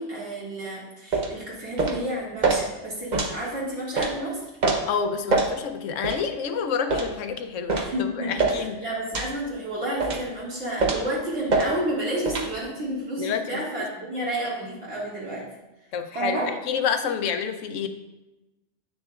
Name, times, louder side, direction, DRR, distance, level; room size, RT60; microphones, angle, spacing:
voice 1, 0.0-4.5 7.7-15.4 16.1-16.5, right 1 dB, 65° right, -6 dB, 2.5 m, -31 dB
sound 1, 1.1-1.3 1.8-2.0 2.4-2.6 3.1-3.3 4.0-4.1 4.6-4.8 5.3-5.5 6.0-6.2 6.9-7.1 7.7-7.9 8.4-8.6 9.1-9.3 10.0-10.3 10.8-11.1 11.5-11.7 12.3-12.5, right 3 dB, 40° right, 0.8 m, -23 dB
voice 2, 4.9-8.8 13.2-13.9 15.9-16.4 16.7-17.9, left 6 dB, 85° left, 8 dB, 1.0 m, -28 dB
8.7 x 6.4 x 2.4 m, 1.0 s
omnidirectional pair, 1.3 m